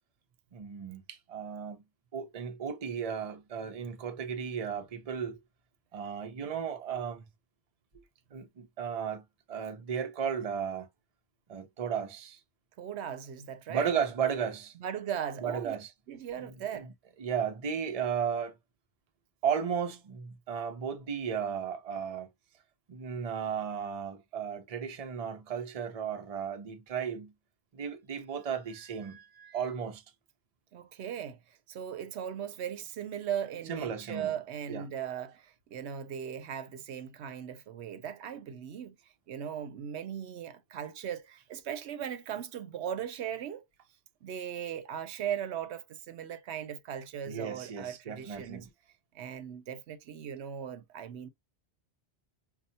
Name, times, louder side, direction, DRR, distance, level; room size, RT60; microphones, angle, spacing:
voice 1, 0.5-1.8 2.1-5.4 5.9-7.2 8.3-10.9 11.5-12.4 13.7-14.7 15.4-15.9 16.4-16.9 17.2-18.5 19.4-22.3 22.9-27.3 27.7-30.0 33.7-34.3 34.7-34.8 47.2-48.7, right 7 dB, 40° right, 0.7 m, -35 dB
voice 2, 12.8-13.9 14.8-15.8 16.1-16.9 30.7-31.4 31.7-39.0 39.3-43.6 44.2-48.7 49.1-51.3, right 9 dB, 80° right, 0.9 m, -38 dB
5.3 x 2.3 x 2.6 m
omnidirectional pair, 1.1 m